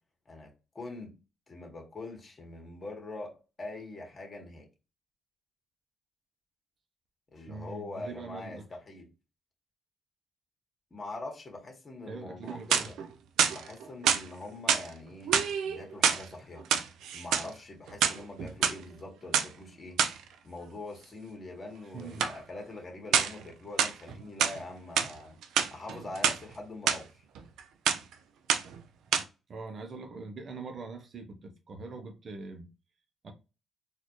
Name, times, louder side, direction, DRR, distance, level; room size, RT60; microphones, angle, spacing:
voice 1, 0.3-1.1 1.5-4.7 7.3-9.1 10.9-13.0 13.5-16.7 17.1-20.0 20.4-25.4 25.7-27.2, left 2 dB, 30° left, 1.8 m, -43 dB
voice 2, 7.5-8.6 12.1-12.9 21.9-22.3 29.5-32.7 33.2-33.3, right 4 dB, 50° right, 0.9 m, -42 dB
sound 1, 12.4-13.1 13.4-14.2 14.7-14.9 15.3-16.2 16.6-17.5 17.9-18.7 19.3-19.5 20.0-20.2 22.2-22.4 23.1-23.4 23.8-24.6 25.0-25.1 25.4-26.4 26.9-27.0 27.4-27.6 27.9-28.1 28.5-28.8 29.1-29.2, right 8 dB, 80° right, 0.5 m, -27 dB
4.2 x 2.7 x 3.1 m
cardioid pair, 90°, 0 cm